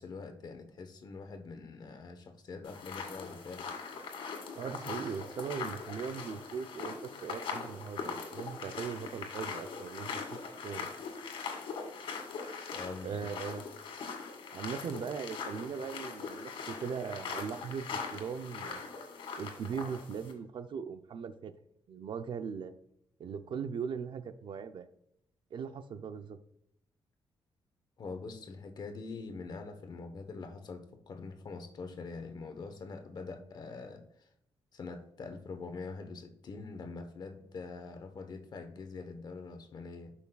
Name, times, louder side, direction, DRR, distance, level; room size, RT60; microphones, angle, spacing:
voice 1, 0.0-3.7 12.7-13.3 28.0-34.3 34.7-40.1, left 4 dB, 50° left, 7 dB, 1.0 m, -44 dB
sound 1, 2.6-20.3, left 5 dB, 75° left, 2.0 m, -41 dB
voice 2, 4.5-10.9 13.0-13.7 14.5-18.8 19.4-21.5 21.9-22.7 23.2-24.9 25.5-26.4, right 6 dB, 60° right, 10 dB, 0.6 m, -39 dB
12.0 x 5.8 x 2.3 m, 0.78 s
cardioid pair, 115°, 9 cm